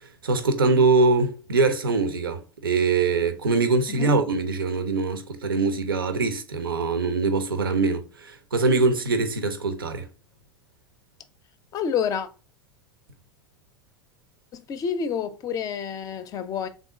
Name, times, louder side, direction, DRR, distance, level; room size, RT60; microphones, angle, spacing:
voice 1, 0.0-10.1, right 3 dB, 75° right, 0.6 m, -23 dB
voice 2, 11.7-12.3 14.5-16.7, left 7 dB, 30° left, 0.5 m, -28 dB
3.6 x 2.6 x 3.5 m
figure-of-eight pair, 80°, 12 cm